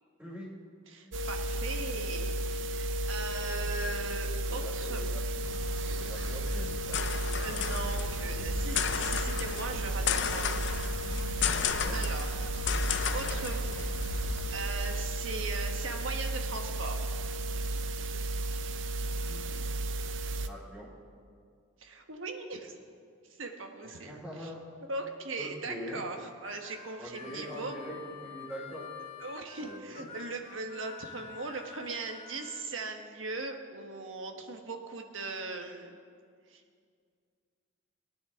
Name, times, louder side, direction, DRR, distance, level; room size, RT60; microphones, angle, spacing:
voice 1, 0.2-0.5 4.5-5.2 5.8-7.6 11.5-12.0 19.1-19.7 20.5-20.9 23.8-24.7 25.4-26.0 27.0-28.9 29.6-30.1, equal, 10° right, -10 dB, 2.8 m, -44 dB
voice 2, 0.9-5.0 7.4-10.5 11.4-12.5 12.8-13.7 14.1-17.1 18.0-18.1 21.8-22.8 23.4-24.5 24.9-27.8 29.2-36.0 36.5-36.6, right 3 dB, 85° right, 4 dB, 1.3 m, -39 dB
sound 1, 1.1-20.5, right 2 dB, 70° right, 0.6 m, -34 dB
sound 2, 5.4-14.7, left 6 dB, 65° left, 0.6 m, -34 dB
Harmonica, 26.1-32.7, left 7 dB, 30° left, 1.0 m, -48 dB
21.5 x 9.8 x 3.7 m, 2.2 s
head